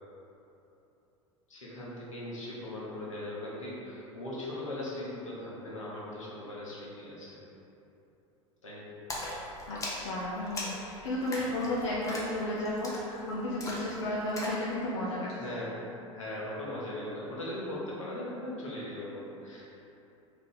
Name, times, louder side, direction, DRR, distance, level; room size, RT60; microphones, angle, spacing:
voice 1, 1.5-7.4 8.6-8.9 14.0-14.3 15.4-15.8 16.1-19.7, left 1 dB, 75° left, -6 dB, 0.9 m, -39 dB
Splash splatter, 9.1-14.6, left 1 dB, 20° left, 0.6 m, -40 dB
voice 2, 9.7-15.6, left 1 dB, 60° left, -6 dB, 0.5 m, -33 dB
3.2 x 2.5 x 3.7 m, 3.0 s
figure-of-eight pair, 75°, 17 cm